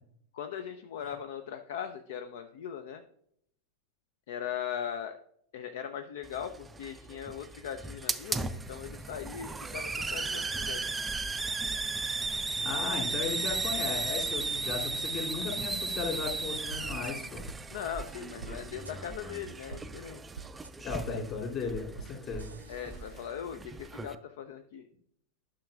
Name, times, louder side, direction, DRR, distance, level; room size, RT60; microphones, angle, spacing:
voice 1, 0.3-3.0 4.3-5.1 5.5-11.0 17.7-20.2 22.7-24.9, left 8 dB, 55° left, 8 dB, 0.5 m, -39 dB
Hiss, 6.2-24.1, right 3 dB, 10° right, 0.4 m, -36 dB
voice 2, 12.6-17.4 20.8-22.6, left 5 dB, 35° left, -1 dB, 2.6 m, -36 dB
sound 1, 16.0-16.1 16.7-17.1 17.5-17.6 18.4-18.5 18.8-19.0 19.7-19.8 20.3-20.7 21.0-21.2 22.0-22.1 22.4-23.4, right 5 dB, 80° right, 0.4 m, -45 dB
11.5 x 6.2 x 2.4 m, 0.68 s
figure-of-eight pair, 90°, 0 cm